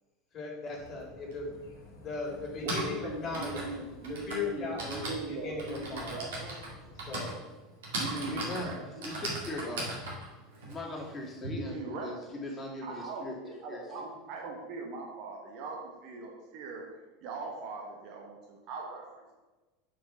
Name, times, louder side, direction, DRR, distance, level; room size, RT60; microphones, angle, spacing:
voice 1, 0.3-1.5 2.0-3.7 4.1-6.2 7.0-7.3, left 4 dB, 35° left, -3 dB, 2.6 m, -37 dB
sound 1, 0.7-7.1, left 2 dB, 70° left, 1.4 m, -53 dB
Typing, 1.3-1.4 2.4-11.5, right 1 dB, 65° right, 1.9 m, -38 dB
voice 2, 2.6-6.5 8.0-9.0 11.5-12.3 12.8-19.4, right 3 dB, 50° right, 0 dB, 1.1 m, -40 dB
voice 3, 8.3-9.9 10.7-13.4 13.7-14.0, left 2 dB, 20° left, -3 dB, 2.1 m, -39 dB
6.0 x 4.6 x 5.7 m, 1.1 s
figure-of-eight pair, 75°, 0 cm